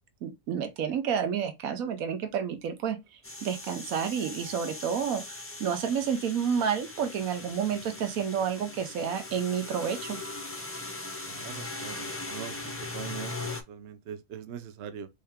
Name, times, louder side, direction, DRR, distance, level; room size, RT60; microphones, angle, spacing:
voice 1, 0.2-3.0 3.4-10.2, right 7 dB, 80° right, 1.2 m, -30 dB
sound 1, 3.2-13.6, left 2 dB, 20° left, 0.4 m, -40 dB
voice 2, 11.3-12.5 12.9-13.3 13.7-15.1, right 8 dB, 60° right, 0.8 m, -41 dB
4.9 x 2.8 x 3.5 m
omnidirectional pair, 1.4 m